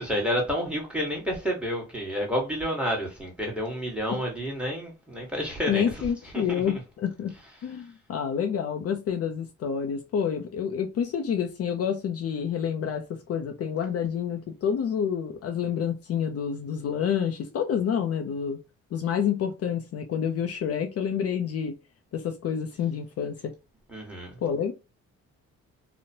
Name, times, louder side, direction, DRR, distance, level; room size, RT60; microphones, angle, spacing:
voice 1, 0.0-6.0 6.3-6.6 23.9-24.3, equal, 5° right, 1.3 m, -29 dB
voice 2, 5.7-7.3 7.6-18.6 18.9-21.7 22.1-23.5 24.4-24.7, left 8 dB, 50° left, 0.5 m, -28 dB
2.9 x 2.1 x 2.7 m
cardioid pair, 90°, 30 cm